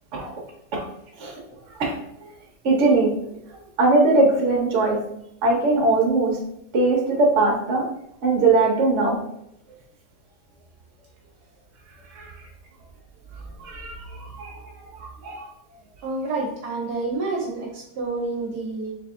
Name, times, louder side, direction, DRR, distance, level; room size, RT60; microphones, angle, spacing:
voice 1, 2.6-3.1 3.8-5.0 5.4-6.4 6.7-7.8 8.2-9.2 12.1-12.3 13.6-14.5 14.9-15.5, right 3 dB, 50° right, -1 dB, 1.1 m, -20 dB
voice 2, 16.0-18.9, right 3 dB, 70° right, -1 dB, 1.3 m, -29 dB
3.7 x 3.3 x 3.7 m, 0.76 s
omnidirectional pair, 1.9 m